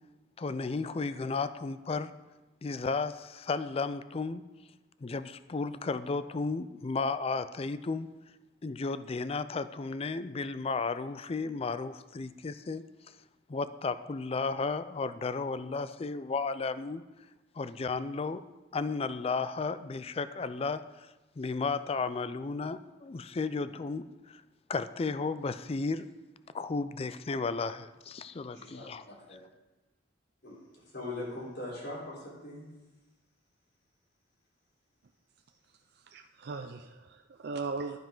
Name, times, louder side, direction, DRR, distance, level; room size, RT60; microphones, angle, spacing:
voice 1, 0.4-2.1 2.6-4.4 5.0-8.1 8.6-12.8 13.5-17.0 17.6-18.4 18.7-21.1 21.4-24.4 24.7-26.1 26.5-29.0, left 4 dB, 30° left, 13 dB, 0.4 m, -33 dB
voice 2, 28.5-29.4 30.4-32.7, left 2 dB, 60° left, -6 dB, 4.3 m, -41 dB
voice 3, 36.1-38.0, right 4 dB, 60° right, 6 dB, 0.5 m, -38 dB
12.0 x 9.2 x 3.9 m, 1.1 s
head